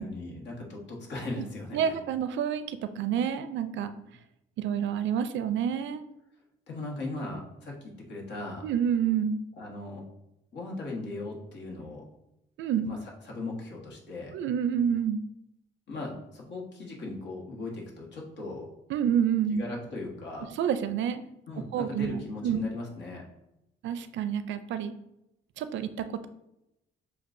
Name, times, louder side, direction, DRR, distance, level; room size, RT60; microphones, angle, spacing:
voice 1, 0.0-2.0 6.7-8.7 9.6-10.0 10.5-12.0 12.8-13.0 13.2-14.3 15.9-18.7 19.5-20.5 21.5-23.2, left 2 dB, 65° left, -1 dB, 1.3 m, -38 dB
voice 2, 1.7-3.9 4.6-6.0 8.6-9.4 12.6-12.9 14.3-15.2 18.9-19.6 20.6-21.2 21.7-22.6 23.8-24.9 25.6-26.3, right 8 dB, 70° right, 11 dB, 0.4 m, -28 dB
7.0 x 2.4 x 2.6 m, 0.89 s
cardioid pair, 90°, 20 cm